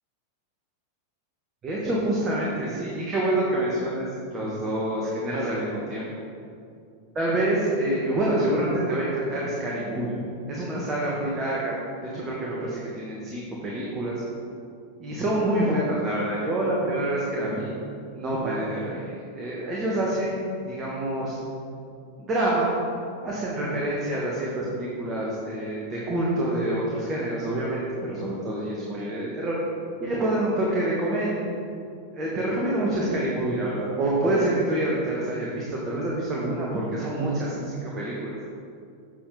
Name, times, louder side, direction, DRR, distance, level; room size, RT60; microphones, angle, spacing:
voice 1, 1.6-6.1 7.1-10.1 10.5-11.8 12.1-14.2 15.0-17.7 18.1-21.4 22.2-22.7 23.2-29.6 30.0-31.5 32.1-38.4, right 1 dB, 25° right, -5 dB, 1.3 m, -27 dB
7.6 x 6.7 x 3.9 m, 2.5 s
figure-of-eight pair, 90°, 0 cm